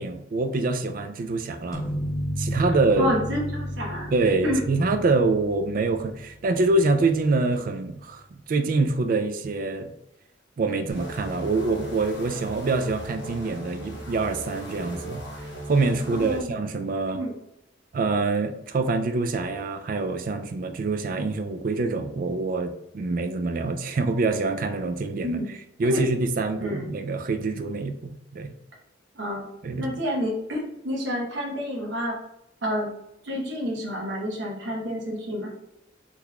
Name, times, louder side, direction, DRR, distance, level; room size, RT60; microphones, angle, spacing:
voice 1, 0.0-1.9 2.4-3.1 4.1-8.2 8.5-9.9 10.6-15.2 15.7-17.2 17.9-25.4 25.8-28.5 29.6-29.9, right 3 dB, 45° right, 7 dB, 0.3 m, -25 dB
sound 1, 1.7-7.3, equal, 20° left, 0.5 m, -33 dB
voice 2, 3.0-4.1 4.4-4.6 16.1-16.5 17.1-17.3 25.2-25.5 25.8-26.0 26.6-26.9 29.2-29.5 29.8-32.1 32.6-32.9 33.2-35.5, equal, 70° right, -2 dB, 0.9 m, -29 dB
sound 2, 10.9-16.4, equal, 65° left, 0.8 m, -38 dB
3.8 x 3.0 x 2.2 m, 0.86 s
head